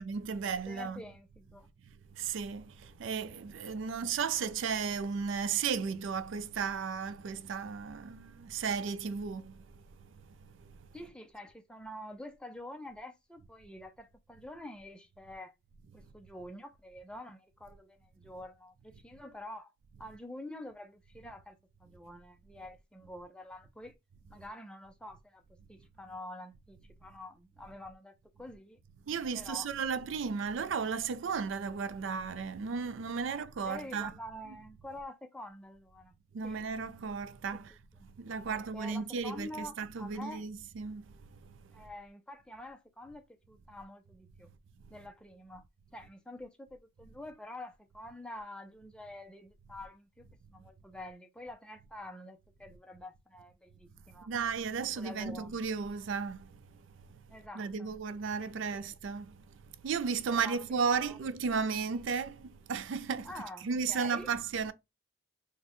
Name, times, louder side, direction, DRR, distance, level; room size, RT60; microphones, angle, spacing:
voice 1, 0.0-1.0 2.1-10.8 29.1-34.1 36.3-37.7 38.2-41.8 54.1-56.8 57.1-57.2 57.6-63.3 63.6-64.7, right 5 dB, 75° right, 0.4 m, -35 dB
voice 2, 0.7-1.7 10.9-15.5 15.9-19.7 20.0-23.9 24.3-25.4 25.7-28.8 29.3-29.7 33.2-36.1 36.4-36.6 37.5-37.6 38.5-40.4 41.7-44.5 44.9-45.6 45.9-50.2 50.5-54.3 55.0-55.6 57.3-57.9 58.4-58.5 58.8-58.9 60.3-61.2 63.2-64.3, left 1 dB, 5° left, 0.4 m, -47 dB
4.1 x 2.1 x 2.9 m
head